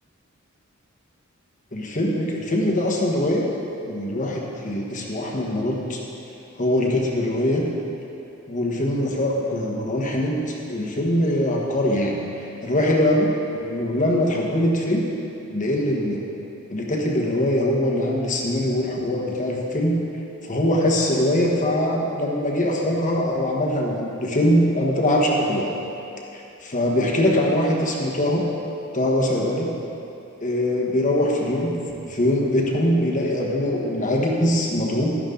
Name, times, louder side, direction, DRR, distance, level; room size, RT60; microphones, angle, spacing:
voice 1, 1.7-3.5 3.9-6.0 6.6-7.6 8.5-15.0 15.5-16.2 16.7-20.0 20.4-25.7 26.3-28.4 28.9-29.7 30.4-31.8 32.1-35.2, left 1 dB, 40° left, -2 dB, 1.4 m, -22 dB
12.0 x 11.0 x 3.9 m, 2.8 s
head